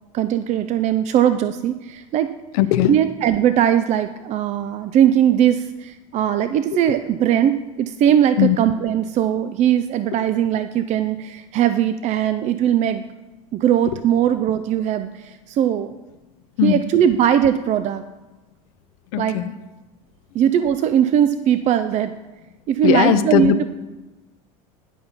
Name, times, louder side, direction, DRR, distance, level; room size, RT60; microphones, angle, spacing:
voice 1, 0.1-2.3 2.9-13.0 13.5-16.0 16.6-18.0 19.2-19.4 20.3-22.1 22.7-23.6, right 10 dB, 40° right, 11 dB, 0.4 m, -19 dB
voice 2, 2.6-2.9 8.4-8.6 16.6-16.8 19.1-19.5 22.8-23.6, left 12 dB, 75° left, 12 dB, 0.6 m, -18 dB
11.0 x 5.2 x 5.8 m, 1.1 s
supercardioid pair, 105°, 18 cm